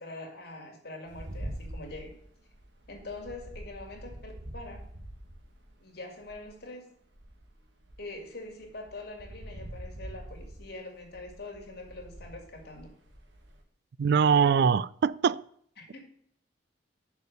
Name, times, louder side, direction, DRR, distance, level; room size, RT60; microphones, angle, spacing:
voice 1, 0.0-2.1 2.9-4.8 5.8-6.9 8.0-12.9 15.8-16.0, left 2 dB, 60° left, 2.4 m, -44 dB
sound 1, 1.1-6.6 7.1-13.6, right 1 dB, 80° right, 1.5 m, -45 dB
voice 2, 14.0-15.4, right 6 dB, 60° right, 0.3 m, -23 dB
6.6 x 5.0 x 6.4 m
head